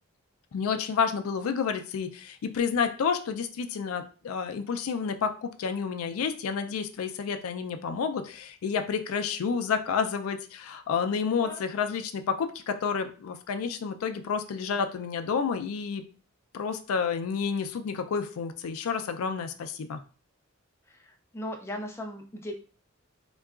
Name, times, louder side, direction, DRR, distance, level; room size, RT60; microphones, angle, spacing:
voice 1, 0.5-16.0 16.5-20.0, left 6 dB, 80° left, 8 dB, 0.4 m, -30 dB
voice 2, 20.9-22.5, left 1 dB, 10° left, 2 dB, 0.3 m, -38 dB
3.6 x 2.3 x 2.4 m, 0.38 s
head